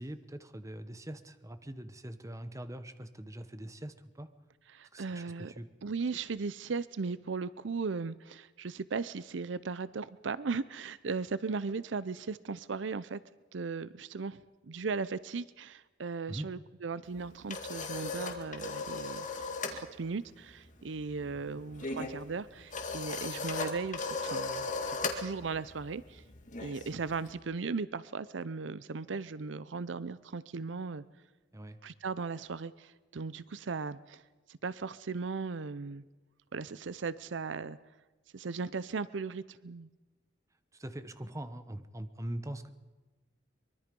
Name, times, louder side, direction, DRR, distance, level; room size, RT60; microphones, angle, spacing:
voice 1, 0.0-4.3 4.9-5.7 16.3-16.5 31.5-31.8 40.7-42.7, right 1 dB, 15° right, 10 dB, 1.1 m, -42 dB
voice 2, 4.7-5.5 5.8-13.2 13.5-26.2 26.6-31.0 31.8-34.2 34.5-36.0 36.5-37.8 38.3-39.9, right 4 dB, 80° right, 17 dB, 0.6 m, -37 dB
sound 1, 17.1-19.8 20.1-20.4 20.6-27.3, left 3 dB, 45° left, 2.1 m, -37 dB
24.0 x 22.5 x 5.3 m, 1.2 s
head